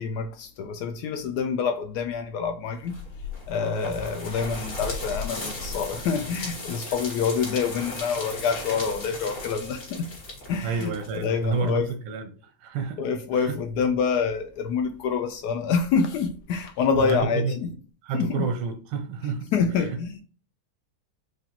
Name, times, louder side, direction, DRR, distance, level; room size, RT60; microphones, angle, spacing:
voice 1, 0.0-3.0 3.5-10.1 10.5-11.9 13.0-17.7 18.1-18.5 19.5-20.2, left 6 dB, 85° left, 0.8 m, -27 dB
sound 1, 2.9-11.7, left 2 dB, 55° left, 2.1 m, -36 dB
voice 2, 10.6-12.3 12.6-13.0 13.3-13.5 17.0-17.6 18.0-19.5 19.9-20.0, right 5 dB, 90° right, 1.6 m, -29 dB
4.9 x 2.4 x 2.8 m
omnidirectional pair, 2.3 m